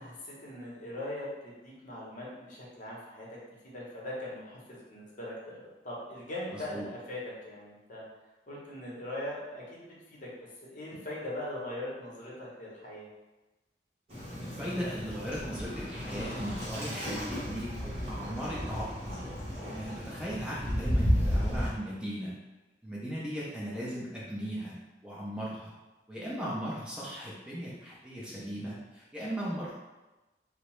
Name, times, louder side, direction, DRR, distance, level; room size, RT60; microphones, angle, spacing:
voice 1, 0.0-3.4 3.6-8.0 8.5-10.3 10.6-13.1, left 1 dB, 45° left, -5 dB, 0.7 m, -40 dB
voice 2, 6.5-6.8 14.4-19.2 19.7-22.3 22.8-24.7 25.0-25.7 26.1-29.7, equal, 5° right, -7 dB, 0.5 m, -37 dB
Waves surf, 14.1-21.7, equal, 35° right, 1.0 m, -33 dB
2.7 x 2.0 x 3.0 m, 1.1 s
head